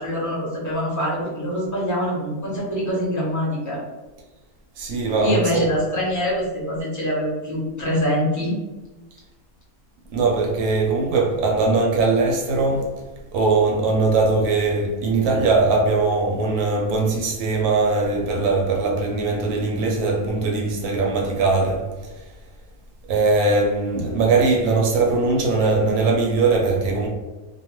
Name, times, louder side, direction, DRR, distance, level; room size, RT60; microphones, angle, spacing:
voice 1, 0.0-3.8 5.2-8.5, equal, 15° left, 0.7 m, -24 dB
voice 2, 4.8-5.7 10.1-13.0 13.3-22.1 23.1-27.1, right 3 dB, 80° right, 1.0 m, -20 dB
2.5 x 2.3 x 2.9 m
omnidirectional pair, 1.6 m